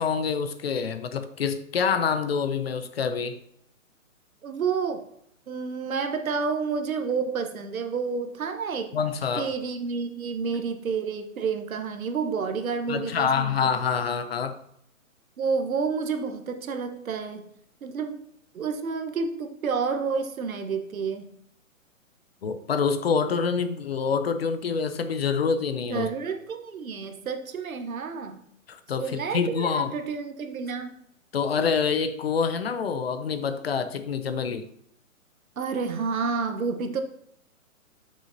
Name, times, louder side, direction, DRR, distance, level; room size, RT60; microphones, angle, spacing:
voice 1, 0.0-3.4 8.9-9.5 12.9-14.6 22.4-26.1 28.7-29.9 31.3-34.6, left 6 dB, 50° left, 10 dB, 0.6 m, -26 dB
voice 2, 4.4-5.1 5.5-8.9 9.3-13.6 15.4-17.5 17.8-18.2 18.5-21.3 25.9-28.4 29.0-31.0 35.6-37.0, right 5 dB, 80° right, 7 dB, 1.1 m, -29 dB
8.3 x 6.3 x 2.7 m, 0.72 s
hypercardioid pair, 165°, 41 cm